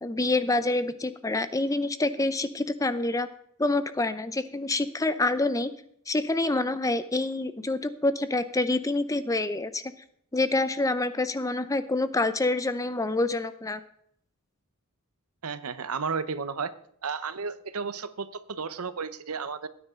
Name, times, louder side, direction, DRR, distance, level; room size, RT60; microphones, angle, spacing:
voice 1, 0.0-3.3 3.6-5.7 6.1-9.8 10.3-13.8, left 2 dB, 15° left, 12 dB, 0.6 m, -27 dB
voice 2, 15.4-16.7 17.0-19.7, right 5 dB, 80° right, 14 dB, 0.8 m, -33 dB
16.0 x 9.7 x 3.7 m, 0.69 s
head